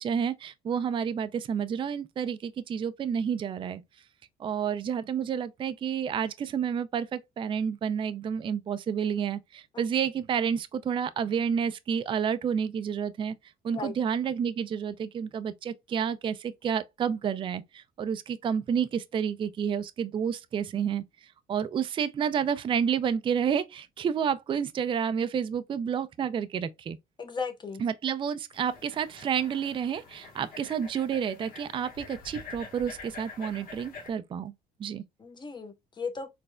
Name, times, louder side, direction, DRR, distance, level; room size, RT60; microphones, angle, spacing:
voice 1, 0.0-3.8 4.4-13.3 13.6-21.0 21.5-27.0 27.8-34.5 34.8-35.0, right 7 dB, 30° right, 0.4 m, -30 dB
voice 2, 27.2-27.8 35.2-36.3, left 4 dB, 25° left, 1.0 m, -36 dB
sound 1, 28.5-34.1, left 4 dB, 55° left, 1.3 m, -46 dB
4.2 x 3.3 x 2.2 m
cardioid pair, 110°, 17 cm